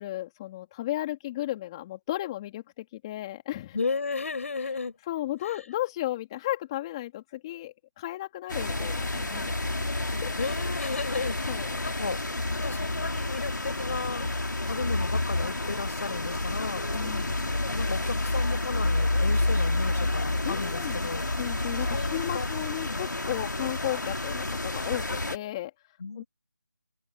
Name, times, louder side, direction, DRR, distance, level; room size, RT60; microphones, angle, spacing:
voice 1, 0.0-3.8 4.6-4.7 5.1-9.9 10.2-10.3 11.5-11.7 16.9-17.5 20.4-21.1 21.4-26.2, left 15 dB, 15° left, 2.4 m, -34 dB
voice 2, 3.7-4.9 5.5-5.6 10.4-12.2 12.6-14.4 14.6-16.9 17.7-21.2 21.9-22.5 22.8-23.0 26.0-26.3, left 4 dB, 45° left, 7.5 m, -34 dB
sound 1, 8.5-25.4, left 2 dB, 85° left, 3.1 m, -29 dB
figure-of-eight pair, 165°, 10 cm